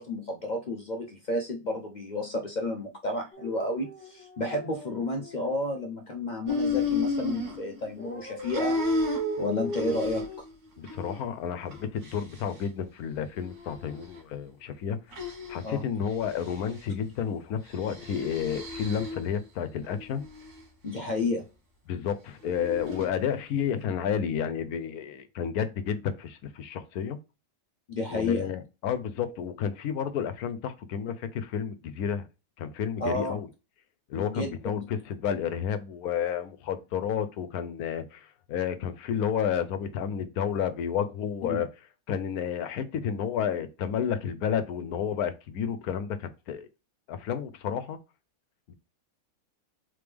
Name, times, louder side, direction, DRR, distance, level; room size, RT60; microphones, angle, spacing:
voice 1, 0.0-8.8 9.4-10.2 15.6-15.8 20.8-21.5 27.9-28.5 33.0-33.4 34.2-34.8 41.5-41.6, left 2 dB, 55° left, 0.5 m, -31 dB
sound 1, 3.3-5.6 8.0-10.4, right 2 dB, 10° left, 0.9 m, -38 dB
sound 2, 6.5-8.1 8.4-10.5 10.8-11.2 11.6-12.7 13.4-14.2 15.1-15.7 16.1-16.8 17.7-19.3 19.8-20.6 22.4-23.1, left 3 dB, 80° right, 1.7 m, -33 dB
voice 2, 10.8-15.2 15.5-20.2 21.9-27.2 28.1-32.2 32.6-33.5 34.1-41.7 42.1-46.7 47.1-48.0 48.7-48.8, left 8 dB, 80° left, 1.1 m, -31 dB
3.8 x 3.4 x 3.4 m
omnidirectional pair, 1.6 m